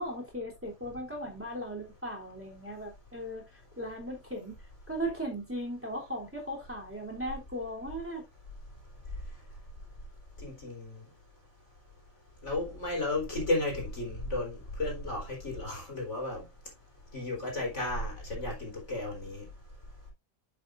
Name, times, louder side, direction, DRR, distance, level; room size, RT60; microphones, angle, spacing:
voice 1, 0.0-4.6 4.9-8.2, equal, 10° right, 3.2 m, -37 dB
voice 2, 10.4-11.0 12.4-16.4 17.1-19.5, left 2 dB, 70° left, 4.7 m, -33 dB
10.0 x 7.9 x 2.6 m
omnidirectional pair, 1.3 m